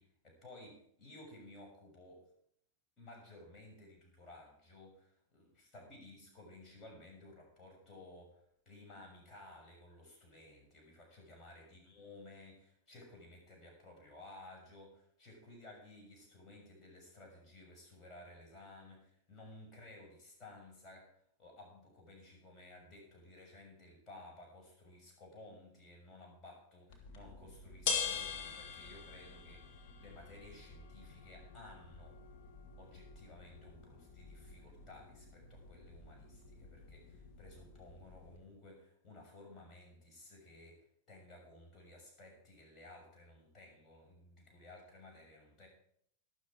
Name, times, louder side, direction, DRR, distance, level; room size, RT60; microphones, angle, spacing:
voice 1, 0.0-2.2 3.0-32.2 32.8-45.7, left 2 dB, 25° left, 0 dB, 6.1 m, -56 dB
sound 1, 26.9-38.4, left 6 dB, 45° left, 2.3 m, -45 dB
12.5 x 12.0 x 4.8 m, 0.69 s
figure-of-eight pair, 90°, 0 cm